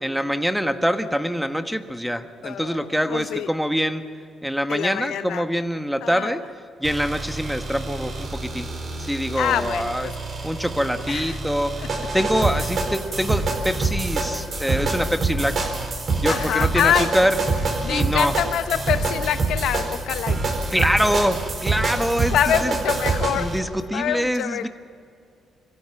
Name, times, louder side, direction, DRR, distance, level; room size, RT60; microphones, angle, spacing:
voice 1, 0.0-4.0 4.4-6.4 6.8-8.7 9.0-10.1 10.4-11.7 12.1-15.6 16.2-17.4 17.9-18.3 20.7-22.3 22.6-22.7 23.3-24.7, equal, ahead, 8 dB, 1.3 m, -24 dB
voice 2, 2.4-3.5 4.7-5.4 6.0-6.4 9.3-10.1 11.1-11.4 12.6-12.7 16.3-17.1 17.8-20.4 22.3-23.5 23.9-24.7, left 10 dB, 80° left, 10 dB, 0.7 m, -25 dB
sound 1, 6.8-23.6, right 3 dB, 50° right, 4.5 m, -26 dB
24.5 x 15.0 x 8.9 m, 2.4 s
cardioid pair, 90°, 0 cm